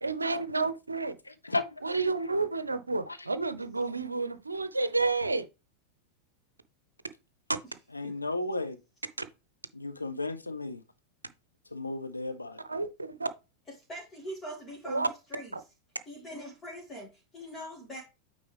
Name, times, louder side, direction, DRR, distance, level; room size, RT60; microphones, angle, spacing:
voice 1, 0.0-1.1 1.8-5.5 12.6-13.3 14.9-15.1 15.5-15.6, right 3 dB, 80° right, 0.6 m, -30 dB
voice 2, 1.3-1.8 7.9-8.8 9.7-10.8 11.7-12.6, left 2 dB, 85° left, 0.7 m, -34 dB
voice 3, 13.9-15.5 16.1-18.0, equal, 20° left, 2.2 m, -42 dB
8.9 x 3.8 x 3.4 m
figure-of-eight pair, 90°, 0 cm